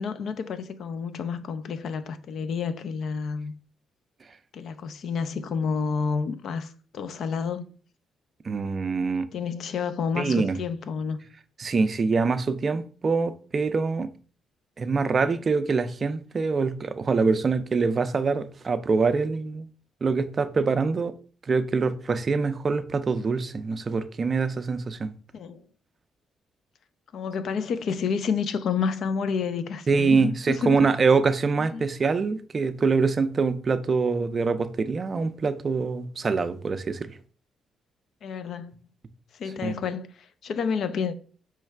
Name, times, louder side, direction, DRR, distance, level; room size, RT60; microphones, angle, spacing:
voice 1, 0.0-3.5 4.5-7.7 9.3-11.2 25.3-25.6 27.1-30.9 31.6-31.8 38.2-38.7 39.3-41.1, left 6 dB, 65° left, 0.4 m, -30 dB
voice 2, 8.4-9.3 10.2-10.6 11.6-14.1 14.8-19.7 20.0-21.1 21.5-25.1 29.9-37.1 39.6-39.8, right 4 dB, 40° right, 0.4 m, -24 dB
4.6 x 3.2 x 3.3 m
cardioid pair, 90°, 0 cm